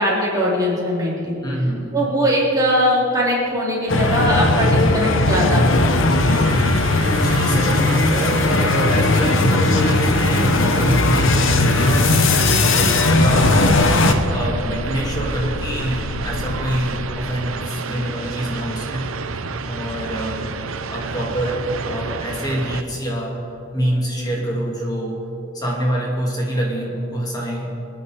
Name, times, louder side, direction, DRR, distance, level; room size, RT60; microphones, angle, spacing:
voice 1, 0.0-1.4 1.9-6.1, equal, 15° right, -6 dB, 4.2 m, -20 dB
voice 2, 1.4-2.0 6.0-6.7 7.0-14.0 14.3-19.1 19.6-20.5 20.9-23.4 23.7-25.3 25.5-27.8, right 1 dB, 20° left, -2 dB, 2.3 m, -25 dB
sound 1, 3.9-14.1, left 2 dB, 65° left, 1.1 m, -17 dB
sound 2, 6.3-22.8, right 4 dB, 75° right, 0.8 m, -30 dB
sound 3, 12.8-17.7, left 3 dB, 85° left, 0.6 m, -31 dB
26.0 x 9.8 x 4.9 m, 2.9 s
head